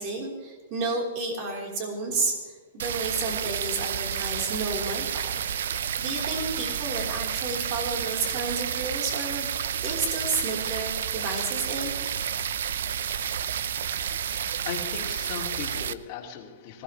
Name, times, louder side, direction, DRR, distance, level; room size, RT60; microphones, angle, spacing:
voice 1, 0.0-9.5 9.8-12.0, right 3 dB, 35° right, 0 dB, 4.0 m, -31 dB
sound 1, 2.8-15.9, right 8 dB, 70° right, 0.7 m, -30 dB
voice 2, 14.0-16.8, left 8 dB, 30° left, -3 dB, 2.6 m, -38 dB
20.0 x 17.0 x 3.3 m, 1.4 s
hypercardioid pair, 165°, 0 cm